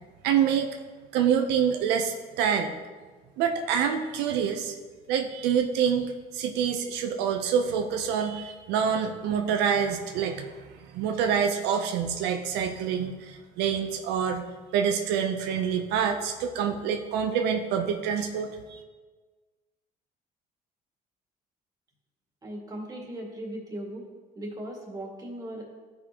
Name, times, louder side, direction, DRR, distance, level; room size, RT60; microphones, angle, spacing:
voice 1, 0.2-0.7 1.1-2.7 3.4-4.7 5.1-10.6 10.9-14.5 14.7-18.8, right 7 dB, 90° right, 4 dB, 0.6 m, -26 dB
voice 2, 22.4-24.1 24.4-25.6, right 1 dB, 20° right, -2 dB, 2.0 m, -38 dB
12.5 x 5.1 x 2.9 m, 1.4 s
cardioid pair, 110°, 17 cm